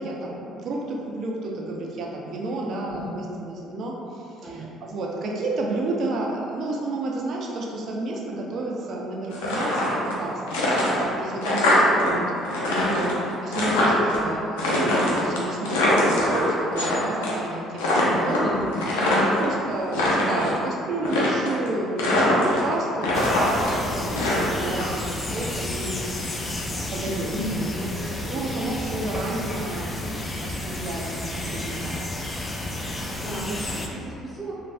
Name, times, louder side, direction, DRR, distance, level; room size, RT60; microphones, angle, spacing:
voice 1, 0.0-10.4 11.2-12.2 12.6-13.1 13.4-17.9 18.2-18.6 19.1-26.1 26.5-27.9 28.3-31.9, right 2 dB, 60° right, -2 dB, 0.5 m, -31 dB
voice 2, 2.9-3.2 4.4-4.7 12.8-12.9 17.8-19.2 20.0-20.1 27.3-27.7 31.3-31.6 33.2-34.5, right 1 dB, 10° right, -7 dB, 1.0 m, -33 dB
sound 1, 9.3-10.2 10.5-12.1 12.4-14.2 14.6-16.9 17.2-17.5 17.8-19.4 19.8-20.6 21.0-21.7 22.0-22.7 23.0-24.8, left 1 dB, 90° left, 0.5 m, -23 dB
sound 2, 23.1-33.9, left 1 dB, 25° left, 0.4 m, -31 dB
3.3 x 2.2 x 2.5 m, 2.7 s
supercardioid pair, 65°, 0 cm